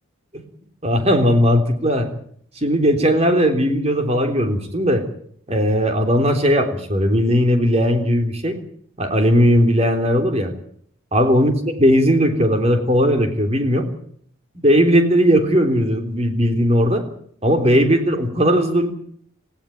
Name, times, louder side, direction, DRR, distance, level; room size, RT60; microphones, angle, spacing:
voice 1, 0.8-2.1 2.6-5.0 5.5-8.5 9.0-10.5 11.1-13.9 14.6-17.0 17.4-18.9, equal, 30° right, 5 dB, 3.5 m, -17 dB
19.0 x 16.5 x 9.2 m, 0.63 s
head